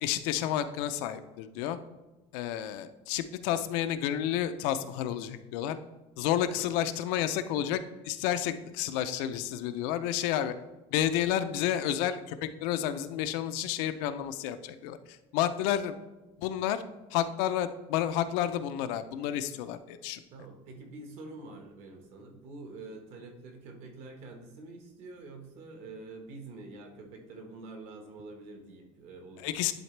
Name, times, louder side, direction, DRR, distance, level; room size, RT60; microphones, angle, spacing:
voice 1, 0.0-1.8 2.3-5.8 6.2-10.5 10.9-16.0 16.4-16.8 17.1-20.2 29.4-29.7, left 11 dB, 80° left, 10 dB, 0.5 m, -30 dB
voice 2, 20.3-29.7, right 3 dB, 60° right, 3 dB, 1.4 m, -46 dB
11.0 x 4.0 x 3.3 m, 1.1 s
cardioid pair, 170°, 13 cm